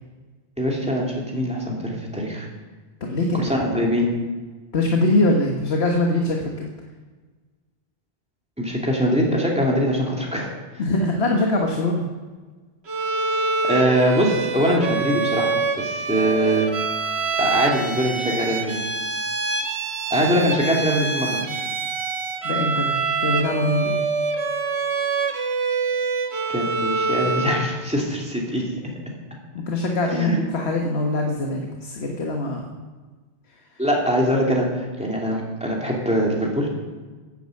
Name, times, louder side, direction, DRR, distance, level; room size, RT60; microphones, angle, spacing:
voice 1, 0.6-2.5 3.3-4.1 8.6-10.5 13.6-16.7 17.4-18.8 20.1-21.4 26.5-28.7 30.1-30.4 33.8-36.7, equal, 5° right, -3 dB, 2.6 m, -22 dB
voice 2, 3.0-3.4 4.7-6.7 10.8-12.0 22.4-24.0 29.5-32.8, left 2 dB, 70° left, 1 dB, 1.5 m, -23 dB
Bowed string instrument, 12.9-27.7, right 4 dB, 75° right, 1.4 m, -25 dB
11.5 x 9.2 x 7.7 m, 1.4 s
omnidirectional pair, 1.1 m